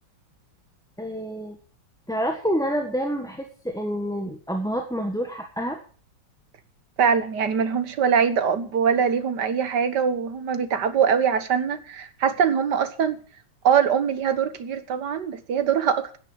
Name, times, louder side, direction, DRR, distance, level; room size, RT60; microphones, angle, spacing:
voice 1, 1.0-1.6 2.1-5.8, equal, ahead, 3 dB, 1.2 m, -28 dB
voice 2, 7.0-13.2 13.6-16.2, right 7 dB, 60° right, 11 dB, 1.9 m, -23 dB
10.0 x 9.8 x 7.9 m, 0.43 s
omnidirectional pair, 2.1 m